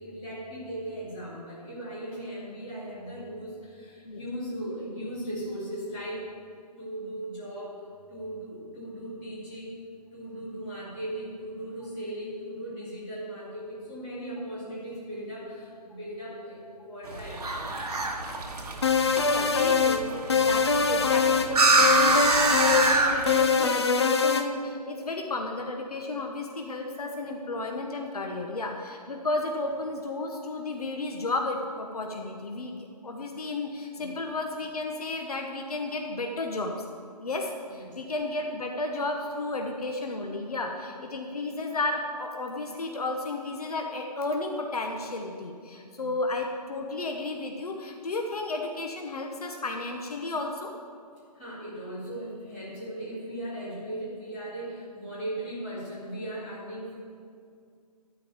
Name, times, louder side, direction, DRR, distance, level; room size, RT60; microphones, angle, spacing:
voice 1, 0.0-6.3 6.8-7.8 8.1-9.8 10.1-17.9 34.0-34.1 37.7-37.9 46.0-46.1 51.3-57.0, right 1 dB, 15° left, -9 dB, 2.3 m, -38 dB
sound 1, 17.0-23.5, right 3 dB, 65° right, 1.8 m, -26 dB
sound 2, 18.8-20.0 20.3-21.5 21.8-23.0 23.3-24.5, left 5 dB, 40° left, 0.7 m, -23 dB
voice 2, 19.2-36.9 37.2-50.7, left 2 dB, 65° left, 2 dB, 1.2 m, -33 dB
12.5 x 4.7 x 8.5 m, 2.3 s
hypercardioid pair, 180°, 21 cm